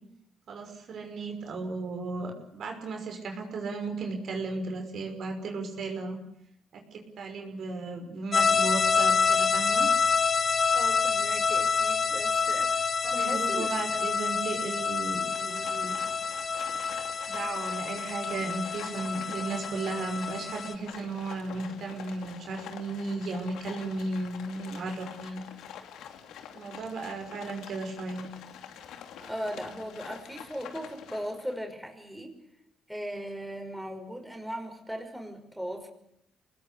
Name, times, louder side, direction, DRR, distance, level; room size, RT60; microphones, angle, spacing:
voice 1, 0.5-6.2 6.7-9.9 13.0-16.0 17.3-25.4 26.5-28.3, right 3 dB, 65° right, 4 dB, 5.8 m, -35 dB
sound 1, 8.3-20.7, left 5 dB, 40° left, 1.7 m, -27 dB
voice 2, 10.7-14.0 29.2-32.4 32.9-35.9, equal, 5° right, 3 dB, 5.6 m, -38 dB
Livestock farm animals working animals, 15.2-31.6, left 9 dB, 85° left, 2.7 m, -46 dB
26.0 x 20.0 x 8.4 m, 0.75 s
cardioid pair, 90°, 0 cm